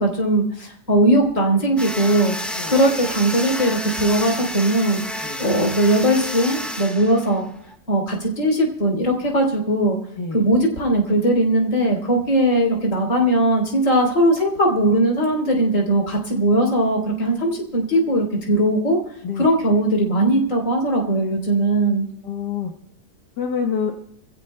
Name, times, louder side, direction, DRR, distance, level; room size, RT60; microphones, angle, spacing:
voice 1, 0.0-2.3 2.7-7.4 7.9-10.0 10.3-19.0 19.4-22.1, right 1 dB, 50° left, 1 dB, 3.8 m, -19 dB
sound 1, 1.8-7.7, equal, ahead, 1.8 m, -30 dB
voice 2, 22.3-22.7 23.4-23.9, left 6 dB, 85° left, 2 dB, 1.9 m, -26 dB
27.0 x 15.5 x 2.2 m, 0.72 s
omnidirectional pair, 1.8 m